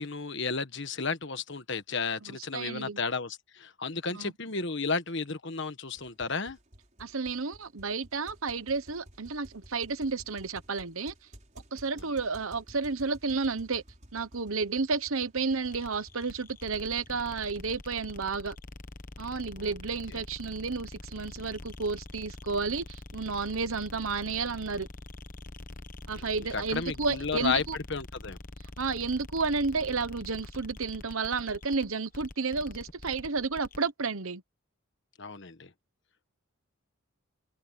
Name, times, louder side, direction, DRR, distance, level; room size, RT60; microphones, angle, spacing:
voice 1, 0.0-6.6 19.6-19.7 20.1-20.2 26.5-28.4 35.2-35.7, left 4 dB, 55° left, 1.5 m, -33 dB
voice 2, 2.3-3.0 4.1-4.3 7.0-11.1 11.7-13.8 14.1-18.6 19.2-24.9 26.1-27.8 28.8-34.4, right 4 dB, 70° right, 1.1 m, -31 dB
sound 1, 6.0-17.8, equal, 35° right, 6.1 m, -54 dB
sound 2, 15.7-33.9, left 2 dB, 40° left, 1.1 m, -45 dB
open air
head